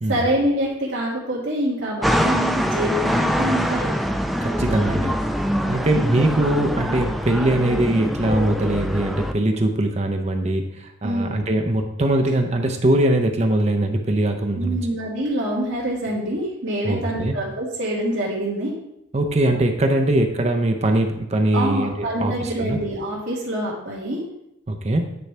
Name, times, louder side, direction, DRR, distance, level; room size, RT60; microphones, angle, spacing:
voice 1, 0.1-3.9 11.0-11.4 14.5-18.7 21.5-24.2, right 1 dB, 90° right, -9 dB, 2.0 m, -25 dB
sound 1, 2.0-9.3, equal, ahead, 0.3 m, -24 dB
voice 2, 4.4-14.8 16.8-17.3 19.1-22.8 24.7-25.1, right 1 dB, 35° right, 4 dB, 0.6 m, -21 dB
9.3 x 4.7 x 3.3 m, 0.84 s
head